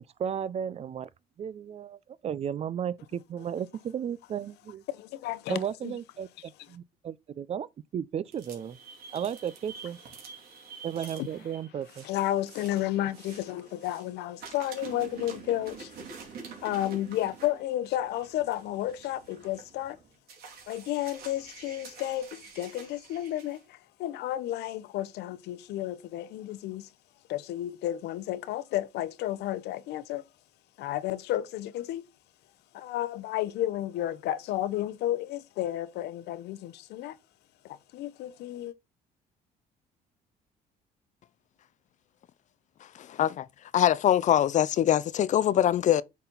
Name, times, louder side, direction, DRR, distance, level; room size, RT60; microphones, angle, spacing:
voice 1, 0.2-1.1 1.4-4.8 5.5-7.7 7.9-8.8 9.1-10.0 10.8-12.1, right 8 dB, 40° right, 0.4 m, -34 dB
voice 2, 4.9-5.9 11.2-11.3 12.0-15.9 16.6-20.0 20.7-26.9 27.3-30.2 30.8-32.0 32.7-37.2 37.6-38.7, left 13 dB, 80° left, 0.7 m, -32 dB
sound 1, 8.2-14.1 14.4-23.6, right 5 dB, 70° right, 2.7 m, -47 dB
voice 3, 42.9-43.5 43.7-46.0, left 11 dB, 45° left, 0.4 m, -23 dB
8.4 x 4.1 x 3.8 m
cardioid pair, 110°, 17 cm